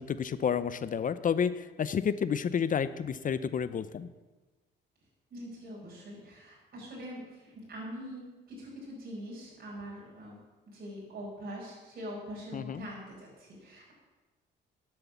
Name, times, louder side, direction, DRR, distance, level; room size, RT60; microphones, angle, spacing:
voice 1, 0.0-4.1 12.5-12.9, left 7 dB, 40° left, 15 dB, 0.5 m, -30 dB
voice 2, 5.3-10.4 10.7-13.9, equal, 50° right, -5 dB, 4.9 m, -43 dB
10.5 x 7.9 x 7.1 m, 1.2 s
cardioid pair, 90°, 20 cm